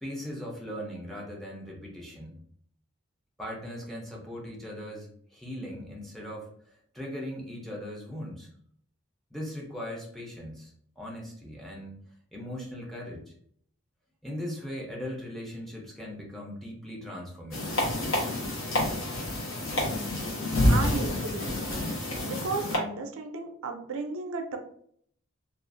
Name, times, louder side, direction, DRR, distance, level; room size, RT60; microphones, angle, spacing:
voice 1, 0.0-2.4 3.4-8.5 9.3-12.0 12.3-13.3 14.2-17.8, equal, ahead, -2 dB, 0.5 m, -39 dB
sound 1, 17.5-22.8, left 1 dB, 70° left, 0.8 m, -28 dB
voice 2, 20.6-21.6 22.3-24.6, right 3 dB, 75° right, 5 dB, 0.4 m, -34 dB
2.4 x 2.4 x 2.5 m, 0.63 s
head